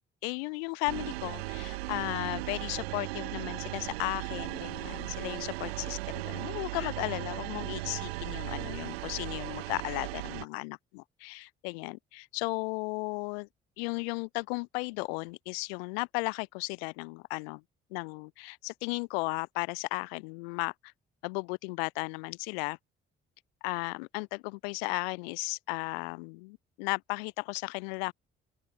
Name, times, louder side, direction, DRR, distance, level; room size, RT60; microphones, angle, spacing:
voice 1, 0.2-13.5 13.8-17.6 17.9-20.9 21.2-22.8 23.6-28.1, left 31 dB, 80° left, 2.1 m, -35 dB
sound 1, 0.9-10.5, right 20 dB, 85° right, 4.3 m, -37 dB
open air
hypercardioid pair, 50°, 30 cm